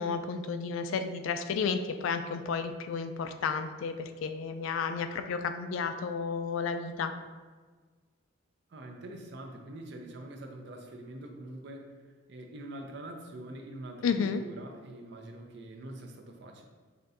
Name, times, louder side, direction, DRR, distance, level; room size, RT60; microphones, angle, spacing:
voice 1, 0.0-7.1 14.0-14.4, left 5 dB, 75° left, 8 dB, 0.3 m, -32 dB
voice 2, 8.7-11.9 12.3-16.7, right 1 dB, 55° right, 3 dB, 0.5 m, -44 dB
5.8 x 2.7 x 2.5 m, 1.4 s
head